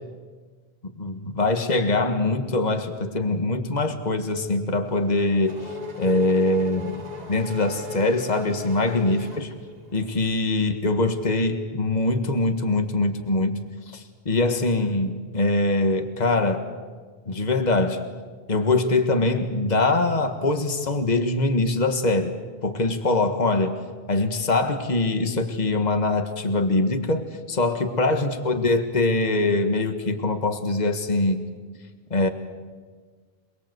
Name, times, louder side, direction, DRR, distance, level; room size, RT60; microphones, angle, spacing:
voice 1, 0.8-5.7 6.0-7.0 7.3-9.5 9.9-16.7 17.3-18.0 18.5-22.3 22.6-23.8 24.1-31.5 32.1-32.3, left 2 dB, 40° left, 6 dB, 1.8 m, -23 dB
Race car auto racing / Accelerating revving vroom, 4.9-10.1, left 3 dB, 40° right, 2.1 m, -38 dB
27.5 x 20.5 x 8.1 m, 1.5 s
omnidirectional pair, 1.1 m